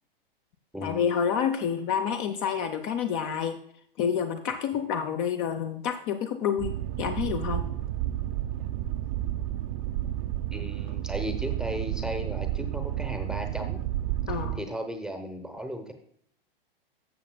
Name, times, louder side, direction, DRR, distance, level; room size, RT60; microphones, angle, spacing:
voice 1, 0.8-3.6 4.0-6.7 7.0-7.7 14.3-14.6, left 7 dB, 30° left, 6 dB, 0.6 m, -28 dB
Boat Water vehicle, 6.6-14.6, right 13 dB, 40° right, 0.6 m, -31 dB
voice 2, 10.5-13.8 14.3-15.9, equal, ahead, 5 dB, 0.8 m, -36 dB
12.5 x 7.3 x 2.3 m, 0.65 s
figure-of-eight pair, 105°, 29 cm